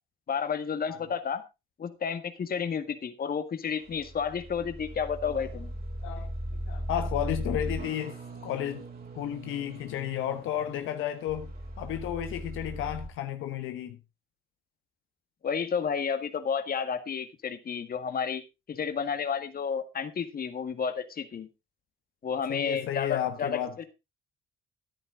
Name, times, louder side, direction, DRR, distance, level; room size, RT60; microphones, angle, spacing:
voice 1, 0.3-1.4 1.8-5.7 15.4-18.4 18.7-21.5 22.2-23.8, left 6 dB, 50° left, 1.9 m, -31 dB
sound 1, 3.6-13.1, right 1 dB, 50° right, 3.7 m, -38 dB
voice 2, 6.7-8.9 9.1-14.0 22.5-23.8, left 11 dB, 90° left, 1.1 m, -33 dB
13.5 x 10.5 x 3.7 m
cardioid pair, 90°, 20 cm